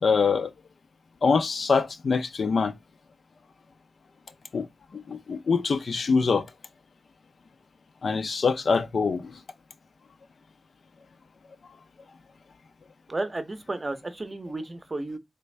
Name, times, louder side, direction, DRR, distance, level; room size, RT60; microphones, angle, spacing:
voice 1, 0.0-0.5 1.2-2.7 4.5-4.7 4.9-6.5 8.0-9.4, left 5 dB, 80° left, 0.4 m, -24 dB
voice 2, 13.1-15.2, right 2 dB, 35° right, 0.6 m, -33 dB
3.3 x 2.5 x 3.2 m
wide cardioid pair, 100°, 0 cm